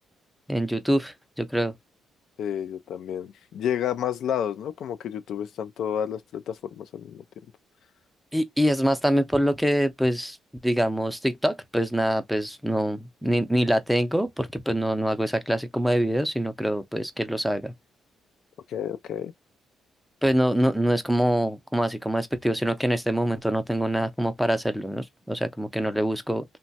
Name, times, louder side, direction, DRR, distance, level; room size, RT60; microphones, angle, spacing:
voice 1, 0.5-1.7 8.3-10.4 10.6-17.7 20.2-26.4, equal, ahead, 0.5 m, -25 dB
voice 2, 2.4-7.2 18.7-19.3, left 9 dB, 70° left, 0.3 m, -30 dB
2.9 x 2.2 x 2.7 m
cardioid pair, 90°, 0 cm